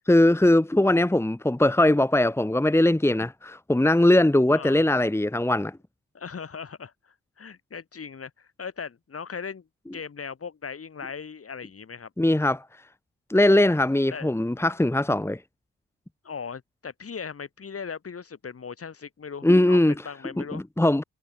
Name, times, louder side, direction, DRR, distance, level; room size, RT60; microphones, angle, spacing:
voice 1, 0.1-5.8 12.2-12.6 13.3-15.4 19.4-19.9 20.5-21.0, left 1 dB, 10° left, 1.8 m, -20 dB
voice 2, 4.5-4.9 6.1-9.7 9.9-12.1 14.1-14.3 16.2-20.6, left 6 dB, 45° left, 6.5 m, -38 dB
supercardioid pair, 60°, 32 cm